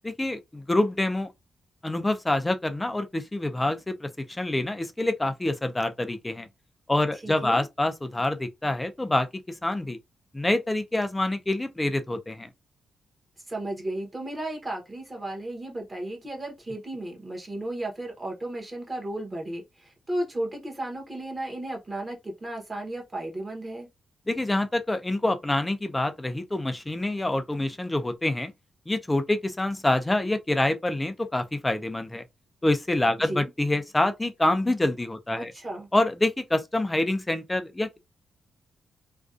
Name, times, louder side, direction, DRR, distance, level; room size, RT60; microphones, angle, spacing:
voice 1, 0.0-1.3 1.8-6.5 6.9-9.3 9.6-10.0 10.3-12.5 24.3-28.5 28.9-32.2 32.6-35.5 35.9-38.0, left 1 dB, 10° left, 0.3 m, -26 dB
voice 2, 7.2-7.7 13.5-23.9 33.2-33.5 35.4-35.9, right 1 dB, 20° right, 0.8 m, -34 dB
2.5 x 2.2 x 2.3 m
wide cardioid pair, 155°, 0 cm